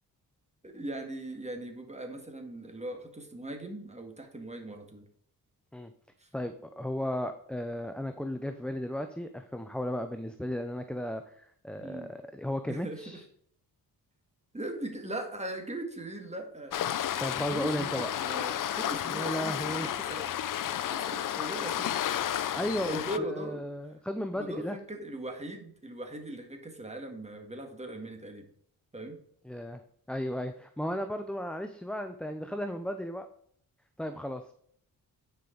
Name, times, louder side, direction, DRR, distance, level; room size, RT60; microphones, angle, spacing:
voice 1, 0.6-5.0 6.2-6.3 11.8-12.1 12.7-13.2 14.5-16.7 17.5-20.6 20.9-22.0 22.4-23.7 24.3-28.5 28.9-29.2, right 1 dB, 15° right, 4 dB, 1.8 m, -40 dB
voice 2, 6.3-13.2 17.2-18.1 19.1-19.9 22.5-24.8 29.4-29.8 30.1-33.3 34.0-34.5, equal, 5° left, 7 dB, 0.5 m, -35 dB
Waves surf, 16.7-23.2, left 11 dB, 55° left, 0.5 m, -32 dB
9.5 x 5.2 x 3.8 m, 0.63 s
cardioid pair, 75°, 38 cm